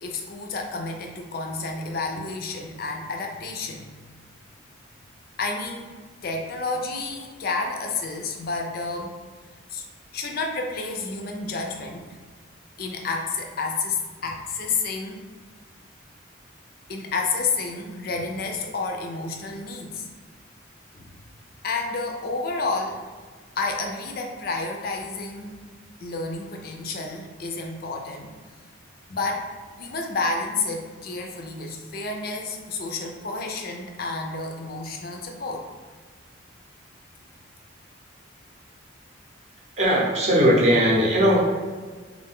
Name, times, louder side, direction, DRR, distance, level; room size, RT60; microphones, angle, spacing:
voice 1, 0.0-3.9 5.4-5.9 6.2-9.2 9.7-9.8 10.1-12.1 12.8-15.2 16.9-20.1 20.9-21.1 21.6-23.0 23.6-25.5 26.0-28.3 29.1-29.5 29.8-35.7, left 3 dB, 45° left, 2 dB, 0.4 m, -30 dB
voice 2, 39.8-41.4, equal, 35° right, -3 dB, 0.7 m, -19 dB
3.2 x 2.5 x 3.5 m, 1.5 s
head